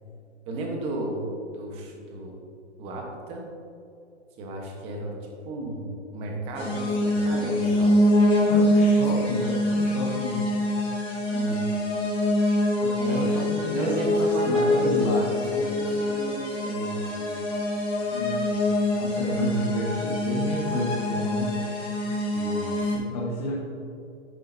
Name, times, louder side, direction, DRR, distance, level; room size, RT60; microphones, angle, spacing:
voice 1, 0.5-2.4 2.8-3.4 4.4-5.1 5.4-8.1 9.0-9.1 11.3-11.6 13.0-13.3 13.7-17.3 19.3-19.8 22.3-23.0, right 2 dB, 15° right, 0 dB, 1.1 m, -34 dB
sound 1, 6.6-23.0, left 1 dB, 15° left, 1.7 m, -24 dB
voice 2, 8.5-10.4 12.8-15.6 18.1-18.6 19.0-22.0 22.8-23.6, left 2 dB, 30° left, -4 dB, 1.2 m, -31 dB
10.5 x 9.3 x 2.7 m, 2.7 s
hypercardioid pair, 155°, 36 cm